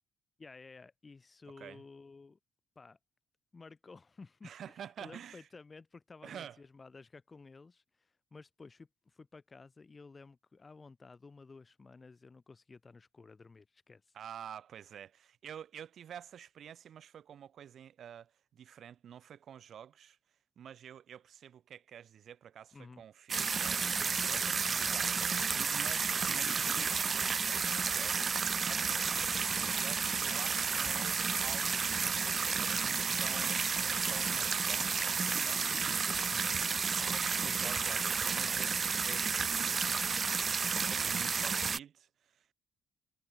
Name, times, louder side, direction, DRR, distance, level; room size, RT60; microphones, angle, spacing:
voice 1, 0.4-2.4 2.8-3.0 3.5-4.5 4.8-14.0 22.7-23.0 23.8-24.5 24.8-25.4 33.7-34.0 36.3-36.7, left 4 dB, 30° left, 1.9 m, -54 dB
voice 2, 4.4-5.5 6.2-6.6 14.1-20.2 20.5-24.4 24.8-36.0 37.0-39.9 40.9-42.5, right 9 dB, 65° right, 1.7 m, -50 dB
sound 1, 23.3-41.8, right 5 dB, 40° right, 0.4 m, -31 dB
supercardioid pair, 65°, 0 cm